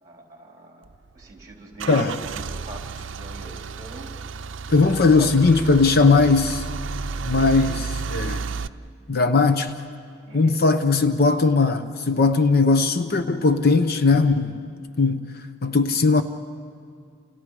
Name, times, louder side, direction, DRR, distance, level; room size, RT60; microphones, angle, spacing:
voice 1, 0.0-0.9 1.1-4.2 5.2-5.3 7.1-7.4 8.4-8.7 10.3-10.6, right 1 dB, 20° right, 3.9 m, -42 dB
Car / Engine starting / Idling, 0.9-8.7, right 4 dB, 70° right, 0.5 m, -32 dB
voice 2, 4.7-6.6 7.2-8.4 9.1-9.7 10.3-14.6 15.0-15.2 15.6-16.2, left 4 dB, 55° left, 0.9 m, -19 dB
29.5 x 29.0 x 4.9 m
head